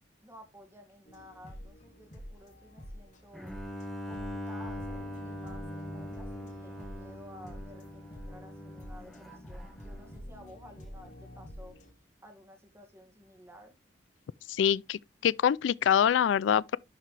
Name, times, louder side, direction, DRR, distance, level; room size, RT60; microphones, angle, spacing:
voice 1, 0.2-3.5 4.1-11.7 12.2-13.7, equal, 15° right, 1.9 m, -53 dB
sound 1, 1.0-11.9, equal, 40° left, 2.2 m, -47 dB
Bowed string instrument, 3.3-10.3, left 1 dB, ahead, 1.4 m, -42 dB
voice 2, 14.5-16.8, left 8 dB, 90° left, 0.3 m, -25 dB
11.5 x 4.7 x 3.3 m
head